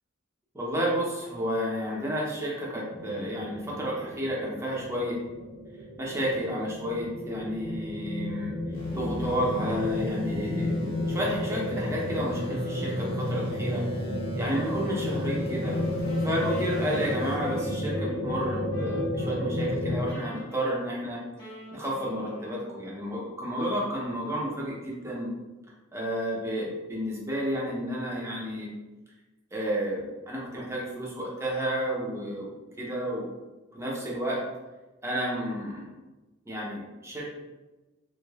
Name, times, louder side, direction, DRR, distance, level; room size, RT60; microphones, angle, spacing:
voice 1, 0.5-5.2 6.0-8.5 8.9-13.8 14.3-15.7 16.2-21.2 21.7-25.3 25.9-28.7 29.5-32.5 32.8-33.3 33.7-34.4 35.0-35.9 36.5-37.2, equal, 15° right, -4 dB, 0.8 m, -31 dB
sound 1, 2.9-20.1, left 1 dB, 45° left, 1.3 m, -31 dB
sound 2, 8.7-17.7, left 1 dB, 85° left, 1.2 m, -45 dB
Wind instrument woodwind instrument, 15.6-19.8 20.1-23.0, equal, 25° left, 1.1 m, -46 dB
3.3 x 3.3 x 2.3 m, 1.1 s
head